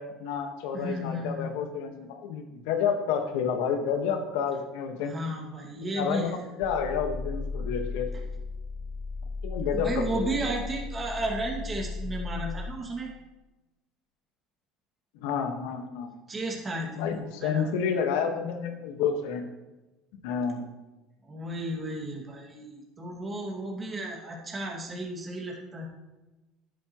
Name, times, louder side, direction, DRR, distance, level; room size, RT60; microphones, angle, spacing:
voice 1, 0.0-5.1 5.8-8.1 9.4-10.4 15.1-16.1 17.0-19.5 20.2-20.7, left 7 dB, 80° left, 5 dB, 1.5 m, -30 dB
voice 2, 0.7-1.5 5.0-6.4 9.7-13.1 16.3-17.7 21.2-25.9, right 1 dB, 25° right, -2 dB, 2.2 m, -33 dB
sound 1, 6.6-12.7, left 3 dB, 5° left, 1.0 m, -35 dB
11.0 x 10.5 x 3.1 m, 1.1 s
supercardioid pair, 120°, 0 cm